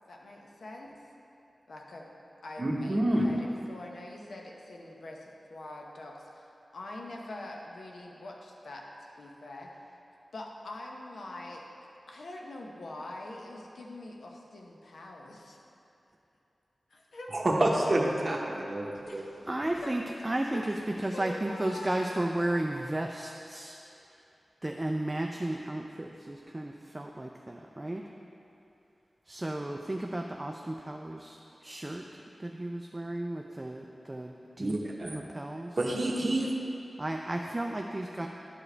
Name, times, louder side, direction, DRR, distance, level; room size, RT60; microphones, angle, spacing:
voice 1, 0.1-1.0 1.7-2.1 2.4-8.8 9.2-9.7 10.3-11.7 12.1-15.6 16.9-17.5 19.1-19.2 19.8-19.9 20.5-20.8 21.1-22.0, left 2 dB, 80° left, -1 dB, 0.8 m, -44 dB
voice 2, 2.6-3.4 17.3-19.2 34.6-35.2 35.8-36.5, right 1 dB, 45° right, -2 dB, 0.9 m, -28 dB
voice 3, 19.3-23.8 24.1-24.2 24.6-28.1 29.3-34.8 35.1-35.8 37.0-38.3, right 1 dB, 20° right, 1 dB, 0.3 m, -34 dB
10.5 x 4.8 x 3.3 m, 2.8 s
wide cardioid pair, 85°, 0 cm